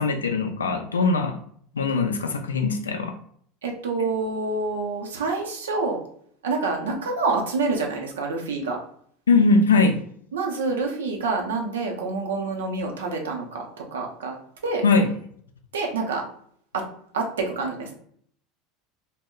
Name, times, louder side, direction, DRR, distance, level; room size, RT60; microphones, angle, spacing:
voice 1, 0.0-1.4 1.7-3.1 9.3-9.9 14.8-15.1, left 4 dB, 85° left, 4 dB, 0.3 m, -21 dB
voice 2, 3.6-6.0 6.4-8.8 10.3-14.4 14.6-14.8 15.7-16.2 16.7-16.8 17.1-17.9, right 3 dB, 80° right, 1 dB, 0.5 m, -27 dB
2.1 x 2.0 x 3.6 m, 0.62 s
hypercardioid pair, 80°, 0 cm